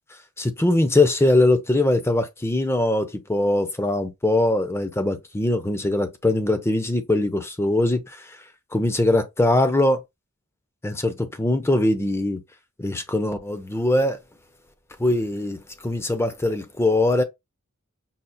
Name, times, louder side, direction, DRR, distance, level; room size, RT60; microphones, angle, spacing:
voice 1, 0.1-10.0 10.8-12.4 12.8-14.2 15.0-17.2, left 2 dB, 10° left, 0.5 m, -22 dB
5.6 x 2.4 x 2.4 m
head